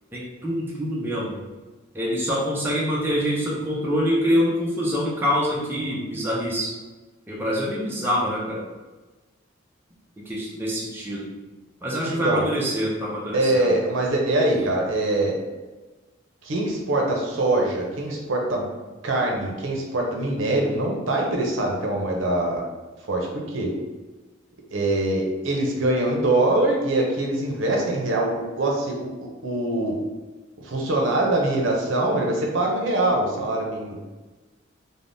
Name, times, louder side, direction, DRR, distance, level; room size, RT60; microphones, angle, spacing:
voice 1, 0.1-1.4 1.9-6.7 7.3-8.6 10.3-11.3 11.8-13.7, equal, 10° right, -5 dB, 0.4 m, -25 dB
voice 2, 13.3-15.4 16.4-18.7 19.0-22.6 23.1-23.7 24.7-29.1 29.4-30.0 30.6-34.0, right 2 dB, 75° right, -1 dB, 0.6 m, -23 dB
3.3 x 2.0 x 2.5 m, 1.2 s
head